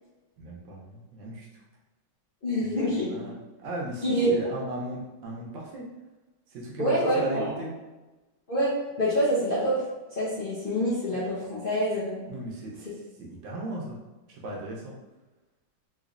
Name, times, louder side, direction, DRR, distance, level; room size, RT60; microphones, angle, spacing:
voice 1, 0.4-1.5 2.6-2.7 3.1-3.3 3.6-5.9 6.5-7.7 12.3-14.0 14.3-14.9, right 1 dB, 75° right, -3 dB, 1.4 m, -36 dB
voice 2, 2.4-3.1 4.0-4.3 6.8-7.5 8.5-9.8 10.1-12.2, equal, 60° left, -9 dB, 0.5 m, -26 dB
3.6 x 3.1 x 2.5 m, 1.1 s
omnidirectional pair, 2.2 m